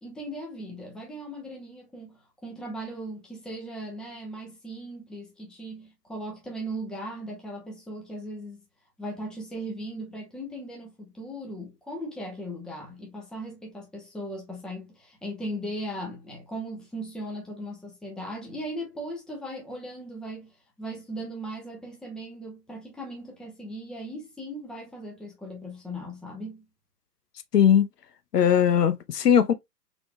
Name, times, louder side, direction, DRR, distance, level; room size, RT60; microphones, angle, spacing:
voice 1, 0.0-8.6 9.0-20.5 20.8-26.6, right 1 dB, ahead, 0.9 m, -38 dB
voice 2, 27.5-27.9 28.3-29.5, left 8 dB, 75° left, 0.7 m, -19 dB
3.9 x 3.7 x 2.2 m
figure-of-eight pair, 120°, 49 cm